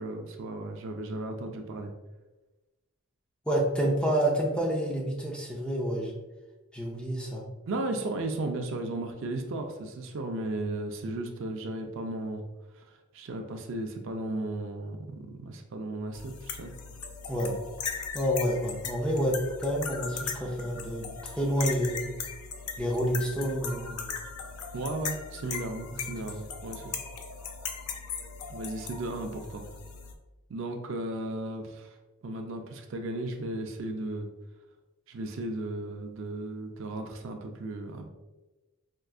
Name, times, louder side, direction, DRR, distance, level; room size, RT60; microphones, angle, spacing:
voice 1, 0.0-1.9 7.7-12.4 12.7-16.7 24.7-26.9 28.5-29.6 30.5-32.0 32.2-34.3 35.1-38.1, right 2 dB, 60° right, 4 dB, 0.4 m, -35 dB
voice 2, 3.5-6.1 6.7-7.4 17.3-17.5 18.1-22.1 22.8-24.2 25.9-26.0, equal, 5° left, -2 dB, 0.5 m, -29 dB
sound 1, 16.1-30.1, left 6 dB, 90° left, 0.5 m, -39 dB
4.4 x 2.4 x 2.3 m, 1.1 s
head